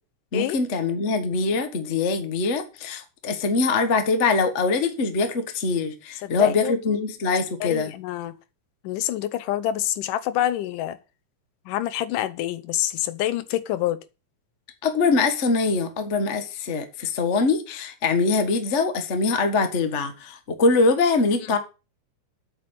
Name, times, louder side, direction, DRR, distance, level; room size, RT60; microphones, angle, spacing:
voice 1, 0.3-7.9 14.8-21.6, left 4 dB, 45° left, 0.9 m, -23 dB
voice 2, 6.2-7.0 7.6-8.3 8.8-11.0 11.7-14.0, left 13 dB, 80° left, 2.3 m, -27 dB
8.5 x 5.9 x 7.9 m
omnidirectional pair, 3.8 m